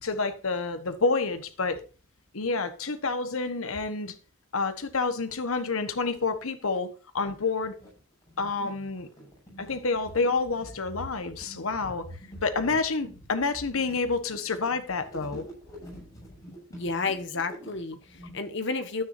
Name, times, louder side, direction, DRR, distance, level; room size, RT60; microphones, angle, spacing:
voice 1, 0.0-1.8 2.3-4.1 4.5-6.9 7.1-7.8 8.4-9.1 9.6-12.1 12.4-15.4, left 4 dB, 80° left, 1.3 m, -28 dB
sound 1, 5.4-5.5 5.8-6.8 7.4-18.3, equal, 15° left, 7.2 m, -46 dB
voice 2, 16.7-19.0, left 4 dB, 55° left, 1.4 m, -31 dB
13.0 x 9.4 x 2.7 m
head